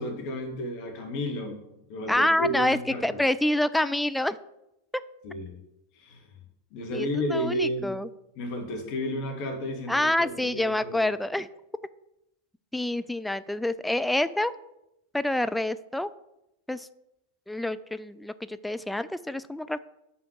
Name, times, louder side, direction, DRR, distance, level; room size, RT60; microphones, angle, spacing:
voice 1, 0.0-3.2 5.2-5.6 5.9-6.3 6.7-8.0 8.4-11.1, equal, 45° left, 2 dB, 1.7 m, -32 dB
voice 2, 2.1-4.4 6.9-8.1 9.9-11.5 12.7-14.5 15.1-16.1 16.7-16.9 17.5-19.8, left 1 dB, 5° left, 12 dB, 0.3 m, -27 dB
5.7 x 5.0 x 6.6 m, 0.85 s
figure-of-eight pair, 90°, 0 cm